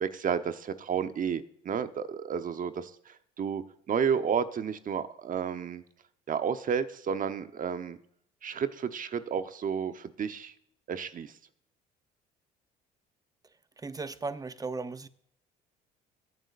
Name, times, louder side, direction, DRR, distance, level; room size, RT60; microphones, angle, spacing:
voice 1, 0.0-3.6 3.9-5.8 6.3-8.0 8.4-10.5 10.9-11.3, right 7 dB, 45° right, 1.0 m, -31 dB
voice 2, 13.8-15.1, right 3 dB, 20° right, 0.8 m, -36 dB
22.0 x 9.1 x 2.5 m
supercardioid pair, 70°, 20 cm